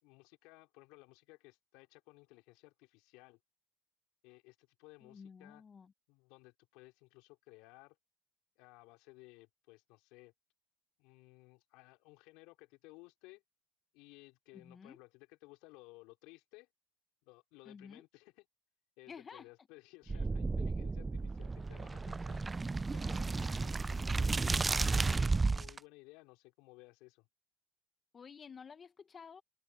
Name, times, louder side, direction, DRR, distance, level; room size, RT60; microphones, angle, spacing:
voice 1, 0.0-3.4 4.2-5.6 6.1-8.0 8.6-10.3 11.0-13.4 13.9-16.7 17.3-18.4 19.0-22.4 22.9-24.1 24.7-27.3, left 24 dB, 75° left, 4.6 m, -58 dB
voice 2, 5.0-5.9 14.5-15.0 17.6-18.0 19.1-19.5 20.1-20.2 28.1-29.4, left 6 dB, 30° left, 1.1 m, -52 dB
sound 1, 20.1-25.8, right 3 dB, 20° right, 0.3 m, -33 dB
supercardioid pair, 90°, 0 cm